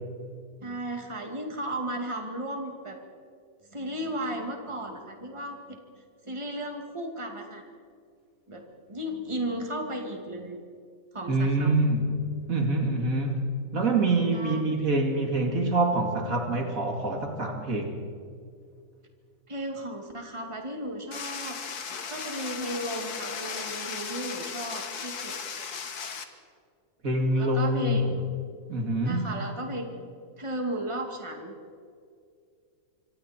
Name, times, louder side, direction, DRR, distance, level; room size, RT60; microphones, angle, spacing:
voice 1, 0.6-3.0 3.7-5.8 6.2-7.6 8.5-10.6 11.1-11.7 14.3-14.6 19.5-21.6 22.1-25.3 27.3-28.3 29.0-29.9 30.4-31.5, right 1 dB, 20° right, 2 dB, 2.5 m, -35 dB
voice 2, 11.3-12.2 12.5-13.5 13.7-18.0 27.0-28.0 28.7-29.4, right 2 dB, 65° right, 3 dB, 2.8 m, -25 dB
sound 1, 21.1-26.2, left 6 dB, 90° left, 2.0 m, -36 dB
26.0 x 25.5 x 4.5 m, 2.3 s
omnidirectional pair, 1.6 m